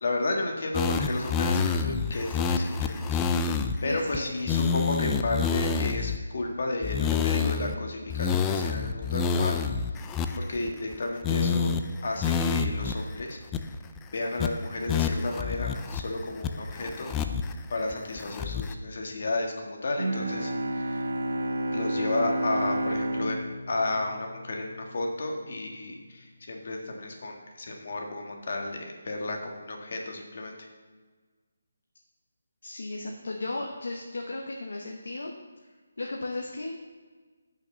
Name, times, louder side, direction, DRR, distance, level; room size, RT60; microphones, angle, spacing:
voice 1, 0.0-9.6 10.3-11.7 12.0-13.4 14.1-17.1 17.7-21.1 21.7-30.7, left 2 dB, 55° left, 1 dB, 1.7 m, -32 dB
sound 1, 0.7-3.7 4.1-4.2 4.5-6.2 6.8-7.8 8.1-10.9 11.2-11.8 12.2-12.9 13.2-13.3 13.5-14.0 14.4-14.5 14.9-16.0 16.4-17.5 17.9-18.7, left 5 dB, 10° left, 0.3 m, -28 dB
voice 2, 3.8-4.2 32.6-35.3 36.0-36.8, left 2 dB, 75° left, 1 dB, 1.1 m, -35 dB
Bowed string instrument, 20.0-25.1, right 1 dB, 85° right, 1.1 m, -31 dB
6.5 x 5.9 x 7.0 m, 1.4 s
figure-of-eight pair, 165°, 0 cm